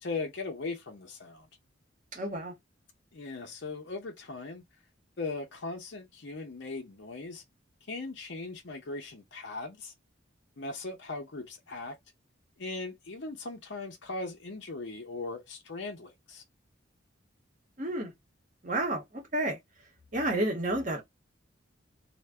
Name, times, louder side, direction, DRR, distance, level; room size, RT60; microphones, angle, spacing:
voice 1, 0.0-1.5 3.1-4.6 5.2-7.4 7.9-9.9 10.6-12.0 12.6-16.4, left 3 dB, 60° left, 0.7 m, -39 dB
voice 2, 2.1-2.5 17.8-18.1 18.6-19.0 19.3-19.6 20.1-21.0, right 1 dB, 40° right, 0.9 m, -30 dB
2.5 x 2.1 x 3.3 m
head